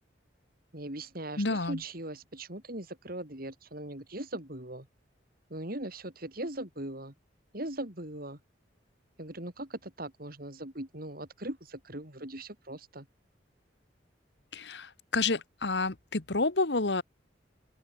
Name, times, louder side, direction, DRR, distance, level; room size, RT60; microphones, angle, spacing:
voice 1, 0.7-4.9 5.5-7.1 7.5-8.4 9.2-13.0, right 1 dB, 50° right, 4.2 m, -40 dB
voice 2, 1.4-1.8 14.5-17.0, left 3 dB, 65° left, 1.5 m, -29 dB
open air
head